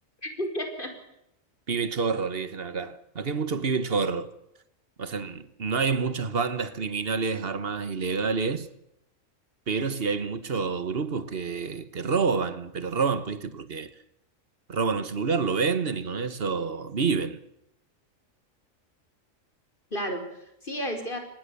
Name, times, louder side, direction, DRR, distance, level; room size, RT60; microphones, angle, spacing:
voice 1, 0.2-0.9 19.9-21.2, equal, 40° left, 5.2 m, -32 dB
voice 2, 1.7-4.3 5.0-8.7 9.7-13.9 14.7-17.4, right 5 dB, 45° right, 1.6 m, -28 dB
26.0 x 20.0 x 7.0 m
omnidirectional pair, 1.4 m